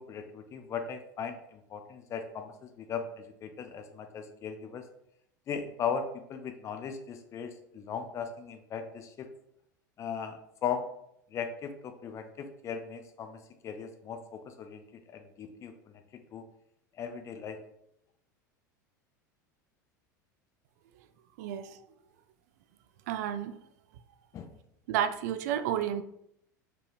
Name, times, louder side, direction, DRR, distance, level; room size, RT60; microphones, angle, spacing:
voice 1, 0.0-4.9 5.5-9.3 10.0-10.9 11.3-13.4 13.6-14.8 15.1-16.4 17.0-17.6 24.3-24.5, left 6 dB, 30° left, 7 dB, 0.5 m, -38 dB
voice 2, 21.4-21.8 23.1-23.6 24.9-26.0, right 10 dB, 60° right, 10 dB, 0.4 m, -31 dB
4.4 x 3.3 x 2.5 m, 0.74 s
figure-of-eight pair, 80°, 10 cm